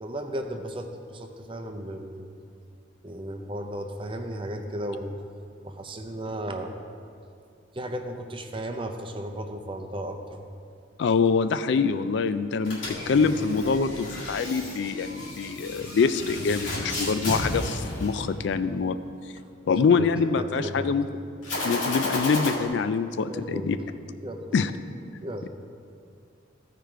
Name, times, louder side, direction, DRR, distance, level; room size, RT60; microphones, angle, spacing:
voice 1, 0.0-2.3 3.0-5.2 5.6-6.8 7.7-10.4 20.0-20.1 20.3-20.9 23.3-23.8 24.2-24.6 25.2-25.5, right 1 dB, 25° right, 5 dB, 0.6 m, -35 dB
voice 2, 11.0-19.0 19.7-21.1 21.6-23.8 24.5-24.7, left 5 dB, 65° left, 11 dB, 0.3 m, -25 dB
sound 1, 12.6-18.8 21.4-22.5, left 2 dB, 85° left, 2.0 m, -32 dB
14.5 x 5.0 x 4.5 m, 2.4 s
head